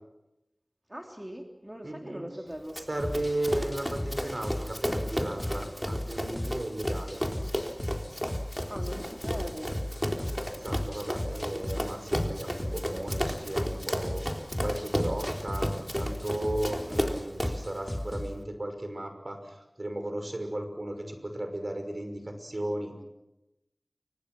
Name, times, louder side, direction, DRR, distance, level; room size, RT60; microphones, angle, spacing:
voice 1, 0.9-2.8 8.7-9.8, equal, 20° right, 2 dB, 3.2 m, -40 dB
voice 2, 1.8-2.2 2.9-7.2 10.6-15.7 16.0-23.0, right 1 dB, 55° right, 6 dB, 5.7 m, -35 dB
Run, 2.7-17.7, equal, ahead, 3.7 m, -33 dB
sound 1, 3.0-18.4, left 1 dB, 15° left, 3.5 m, -36 dB
29.0 x 25.5 x 6.4 m, 0.94 s
wide cardioid pair, 50°, 0 cm